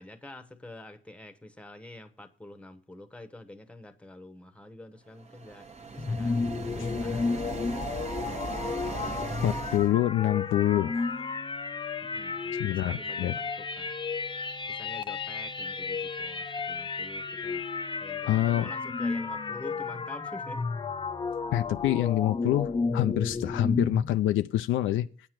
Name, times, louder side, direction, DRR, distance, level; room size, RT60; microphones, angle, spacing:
voice 1, 0.0-7.5 12.0-14.0 14.7-20.7, left 1 dB, 5° left, 1.0 m, -47 dB
sound 1, 5.2-9.9, right 4 dB, 35° right, 1.0 m, -38 dB
sound 2, 6.0-24.1, left 4 dB, 25° left, 0.6 m, -32 dB
voice 2, 9.4-11.3 12.5-13.4 18.3-18.7 21.5-25.1, left 13 dB, 80° left, 0.5 m, -26 dB
8.8 x 6.6 x 5.9 m
cardioid pair, 90°, 20 cm